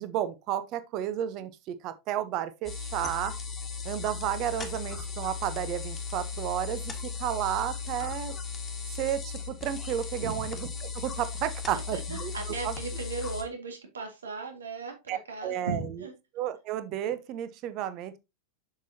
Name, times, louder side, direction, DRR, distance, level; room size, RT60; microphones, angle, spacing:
voice 1, 0.0-3.3 3.8-8.3 9.0-12.3 12.6-12.7 15.1-16.0 16.3-18.2, right 11 dB, 40° right, 0.7 m, -32 dB
sound 1, 2.6-13.4, left 5 dB, 20° left, 1.6 m, -37 dB
voice 2, 11.7-16.1, right 4 dB, 70° right, 1.8 m, -37 dB
7.2 x 6.0 x 2.7 m
figure-of-eight pair, 90°, 0 cm